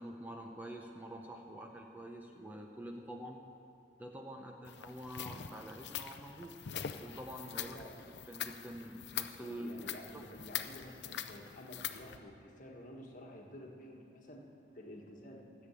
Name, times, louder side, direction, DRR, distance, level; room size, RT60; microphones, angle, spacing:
voice 1, 0.0-3.4 4.0-6.5 7.0-7.8 8.3-9.9 10.1-10.3, right 1 dB, 10° right, 1 dB, 0.7 m, -46 dB
sound 1, 4.6-12.2, left 9 dB, 65° left, 0.5 m, -44 dB
voice 2, 9.4-14.4 14.7-15.4, left 1 dB, 45° left, 0 dB, 1.5 m, -51 dB
13.5 x 7.0 x 8.4 m, 2.5 s
head